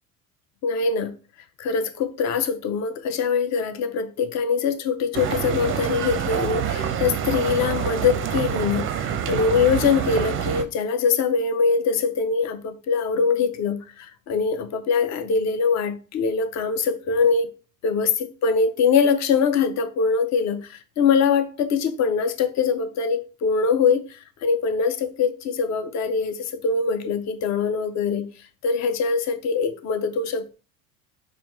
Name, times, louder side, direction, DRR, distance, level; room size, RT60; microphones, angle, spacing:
voice 1, 0.6-1.1 1.6-17.5 17.8-18.1 18.4-28.3 28.6-30.5, left 5 dB, 40° left, 0.6 m, -23 dB
sound 1, 5.1-10.6, right 8 dB, 30° right, 0.5 m, -26 dB
4.0 x 2.4 x 3.0 m
hypercardioid pair, 75°, 42 cm